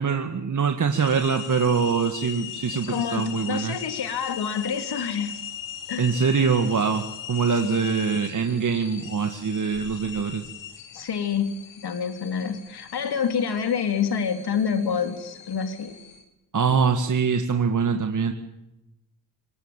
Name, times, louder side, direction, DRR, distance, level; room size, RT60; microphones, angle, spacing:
voice 1, 0.0-3.8 6.0-10.4 16.5-18.3, right 6 dB, 45° right, 5 dB, 2.1 m, -24 dB
sound 1, 0.9-16.2, left 10 dB, 85° left, 4.1 m, -39 dB
voice 2, 2.9-5.4 5.9-6.1 7.6-7.8 10.9-11.5 11.8-16.0, left 7 dB, 60° left, 7 dB, 3.6 m, -27 dB
24.0 x 19.5 x 9.0 m, 0.93 s
cardioid pair, 80°, 43 cm